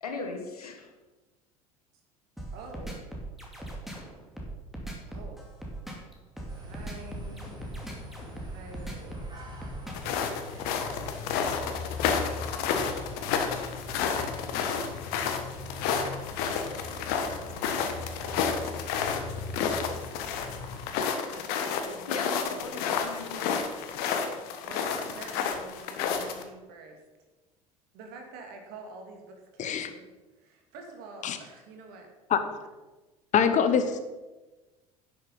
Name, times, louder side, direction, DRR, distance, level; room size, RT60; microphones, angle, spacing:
voice 1, 0.0-0.9 22.1-23.7, left 3 dB, 80° left, 3 dB, 1.7 m, -38 dB
sound 1, 2.4-10.1, right 1 dB, ahead, 2.5 m, -39 dB
voice 2, 2.5-3.0 5.1-5.5 6.6-7.6 8.4-9.3 10.8-11.2 16.2-19.4 21.3-22.9 24.6-27.0 27.9-30.1 30.4-32.1 32.5-32.6, right 3 dB, 55° right, 2 dB, 2.4 m, -48 dB
sound 2, 6.5-20.8, left 3 dB, 25° right, 3.4 m, -41 dB
sound 3, 9.9-26.4, left 6 dB, 55° left, 1.3 m, -31 dB
voice 3, 29.6-29.9 31.2-31.4 32.3-32.4 33.3-34.0, left 7 dB, 40° left, 9 dB, 1.1 m, -24 dB
11.0 x 6.6 x 5.5 m, 1.2 s
figure-of-eight pair, 65°, 19 cm